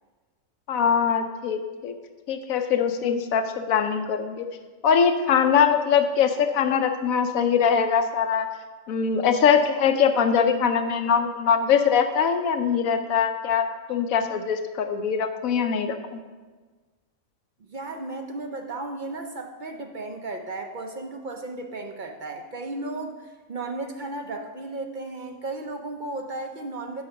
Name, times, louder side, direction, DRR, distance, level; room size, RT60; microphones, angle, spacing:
voice 1, 0.7-1.9 2.3-4.5 4.8-8.5 8.9-16.2, left 7 dB, 75° left, 8 dB, 1.0 m, -22 dB
voice 2, 17.7-27.0, right 2 dB, 55° right, 3 dB, 0.5 m, -34 dB
8.5 x 5.0 x 5.8 m, 1.4 s
omnidirectional pair, 1.5 m